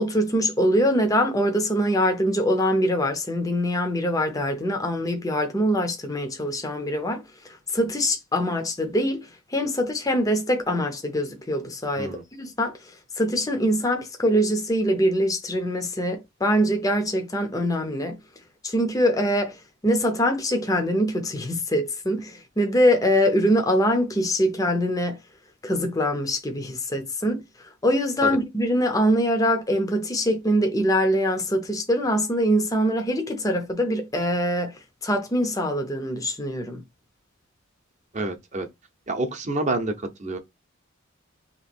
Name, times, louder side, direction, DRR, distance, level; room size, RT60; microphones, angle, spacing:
voice 1, 0.0-18.2 18.6-25.2 25.6-36.8, equal, 15° left, 0.6 m, -23 dB
voice 2, 38.1-38.7 39.1-40.4, right 2 dB, 35° right, 0.7 m, -28 dB
3.1 x 3.0 x 4.3 m
head